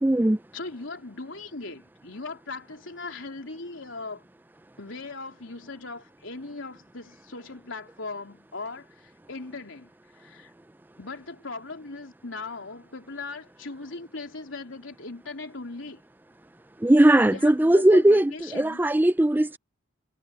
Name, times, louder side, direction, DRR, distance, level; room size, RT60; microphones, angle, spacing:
voice 1, 0.0-0.4 16.8-19.6, right 1 dB, 10° right, 0.4 m, -19 dB
voice 2, 0.5-4.2 4.8-9.9 10.2-10.5 11.0-16.0 17.2-18.8, left 3 dB, 80° left, 3.7 m, -39 dB
head